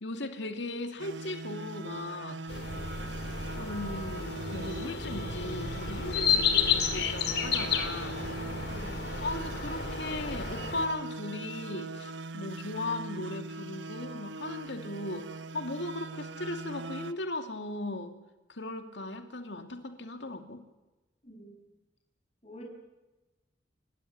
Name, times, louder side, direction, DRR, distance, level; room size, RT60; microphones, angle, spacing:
voice 1, 0.0-2.4 3.4-6.4 6.9-8.2 8.6-8.8 9.2-15.3 15.5-18.1 18.5-20.6, left 2 dB, 75° left, 7 dB, 2.4 m, -37 dB
sound 1, 1.0-17.1, right 3 dB, 85° right, 0.9 m, -41 dB
sound 2, 2.5-10.9, left 6 dB, 60° left, 2.9 m, -32 dB
voice 2, 6.3-6.7 8.7-9.0 21.2-21.7 22.4-22.6, equal, 35° left, 1 dB, 6.2 m, -46 dB
29.5 x 13.5 x 9.9 m, 1.1 s
head